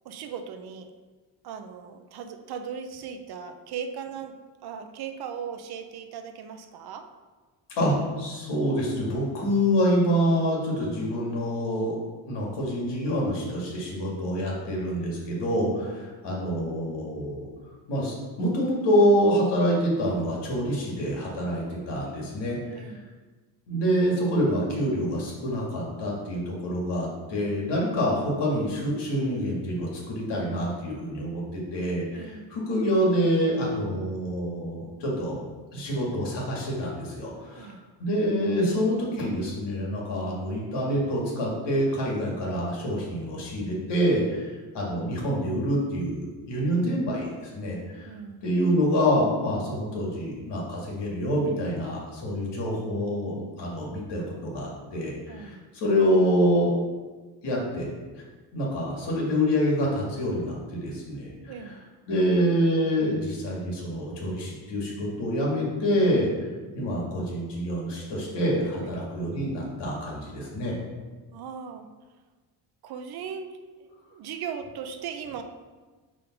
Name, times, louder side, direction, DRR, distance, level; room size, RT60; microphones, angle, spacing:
voice 1, 0.0-0.9 1.4-7.1 15.8-16.0 22.7-23.1 32.1-32.5 37.6-37.9 48.0-48.4 55.3-55.6 61.5-61.9 68.8-68.9 71.3-71.9 72.8-73.5 73.8-75.4, right 7 dB, 65° right, 8 dB, 0.6 m, -38 dB
voice 2, 7.8-11.9 12.3-17.5 17.9-22.9 23.7-35.4 35.7-37.7 38.0-48.1 48.4-56.7 57.4-58.2 58.5-61.5 62.1-66.3 66.7-70.7, equal, 80° left, -3 dB, 2.0 m, -26 dB
5.2 x 3.6 x 5.8 m, 1.3 s
cardioid pair, 170°, 41 cm